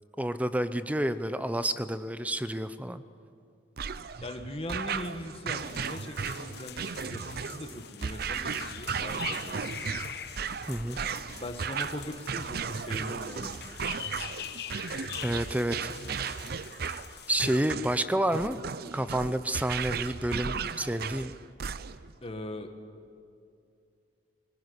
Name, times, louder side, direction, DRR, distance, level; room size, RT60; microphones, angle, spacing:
voice 1, 0.2-3.0 10.7-11.0 15.2-15.9 17.3-18.6 18.9-21.3, right 1 dB, 10° right, 13 dB, 0.7 m, -29 dB
sound 1, 3.8-22.1, right 6 dB, 55° right, 0.6 m, -35 dB
voice 2, 4.2-9.8 10.9-13.6 22.2-22.7, left 1 dB, 30° left, 5 dB, 1.7 m, -40 dB
sound 2, 5.6-17.7, left 9 dB, 60° left, 1.0 m, -44 dB
21.5 x 20.0 x 9.8 m, 2.5 s
head